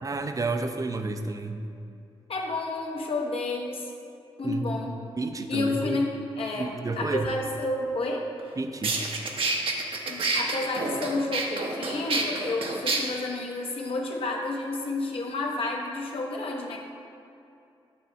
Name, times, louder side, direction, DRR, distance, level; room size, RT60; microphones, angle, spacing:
voice 1, 0.0-1.6 4.4-4.8 5.2-6.0 6.6-7.3 8.6-9.0, right 3 dB, 35° right, 7 dB, 0.6 m, -30 dB
voice 2, 2.3-3.9 4.4-4.9 5.5-8.3 10.1-16.8, left 2 dB, 65° left, 0 dB, 1.1 m, -30 dB
sound 1, 8.4-8.5 8.8-13.0, right 3 dB, 60° right, 0.9 m, -28 dB
8.4 x 3.2 x 5.7 m, 2.6 s
cardioid pair, 55°, 11 cm